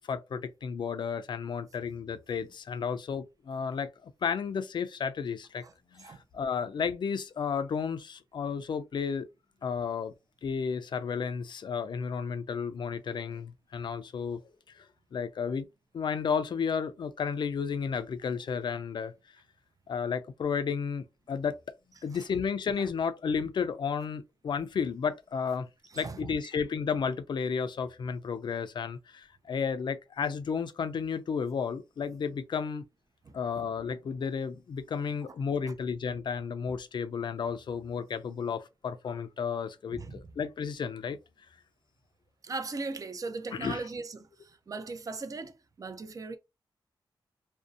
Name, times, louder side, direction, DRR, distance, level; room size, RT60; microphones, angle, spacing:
voice 1, 0.1-5.6 5.9-9.3 9.6-10.1 10.4-14.4 14.7-14.8 15.1-15.7 15.9-19.1 19.9-21.5 22.0-25.7 26.0-32.8 33.3-41.2 43.5-43.8, left 6 dB, 60° left, 0.4 m, -32 dB
voice 2, 25.9-26.4 33.2-33.4 35.6-35.7 39.9-40.2 42.4-46.4, right 3 dB, 40° right, 0.5 m, -39 dB
2.6 x 2.0 x 2.5 m
cardioid pair, 75°, 9 cm